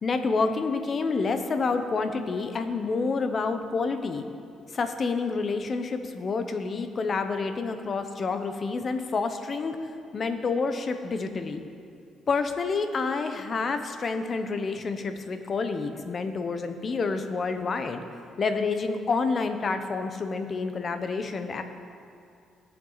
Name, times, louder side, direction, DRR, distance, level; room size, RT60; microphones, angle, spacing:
voice 1, 0.0-4.2 4.7-9.8 10.1-11.6 12.3-18.0 18.4-21.6, left 4 dB, 45° left, 8 dB, 0.9 m, -28 dB
19.0 x 7.2 x 4.1 m, 2.4 s
cardioid pair, 90°, 0 cm